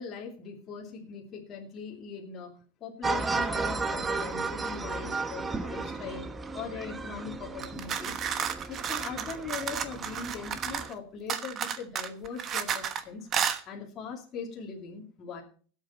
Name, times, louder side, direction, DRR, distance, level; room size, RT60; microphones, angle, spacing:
voice 1, 0.0-2.5 2.8-6.2 6.5-8.2 8.7-13.3 13.7-15.4, left 5 dB, 30° left, -1 dB, 2.8 m, -40 dB
sound 1, 3.0-10.9, right 3 dB, 15° right, 0.8 m, -34 dB
sound 2, 7.6-10.9 11.3-13.0 13.3-13.6, right 8 dB, 30° right, 1.1 m, -32 dB
18.5 x 8.3 x 4.2 m, 0.43 s
supercardioid pair, 160°, 0 cm